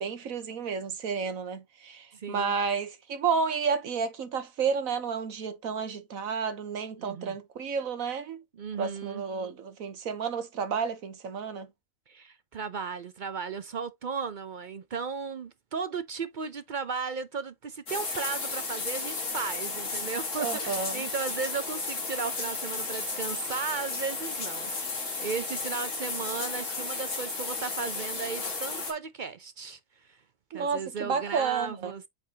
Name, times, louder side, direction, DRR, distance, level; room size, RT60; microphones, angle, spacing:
voice 1, 0.0-8.4 8.8-11.7 20.4-21.0 30.5-31.9, right 6 dB, 75° right, 1.5 m, -31 dB
voice 2, 2.1-2.5 7.0-7.4 8.6-9.2 12.1-29.8 30.1-30.2 30.5-32.1, right 5 dB, 50° right, 0.6 m, -35 dB
sound 1, 17.9-28.9, left 3 dB, 60° left, 2.2 m, -34 dB
8.4 x 4.4 x 2.8 m
omnidirectional pair, 1.4 m